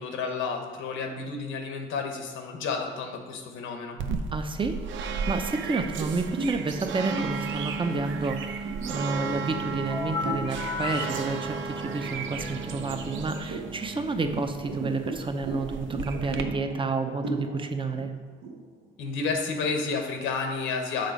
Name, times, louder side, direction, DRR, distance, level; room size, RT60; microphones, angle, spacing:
voice 1, 0.0-4.0 19.0-21.1, left 4 dB, 90° left, 4 dB, 1.0 m, -31 dB
sound 1, 4.0-16.4, right 5 dB, 75° right, 0.5 m, -34 dB
voice 2, 4.3-18.1, right 3 dB, 25° right, 7 dB, 0.6 m, -30 dB
sound 2, 5.5-10.6 11.1-11.3 11.7-12.6 13.1-19.8, right 1 dB, 90° right, 1.2 m, -37 dB
sound 3, 9.9-13.5, left 4 dB, 15° left, 0.4 m, -36 dB
6.7 x 3.9 x 5.1 m, 1.4 s
cardioid pair, 90°, 20 cm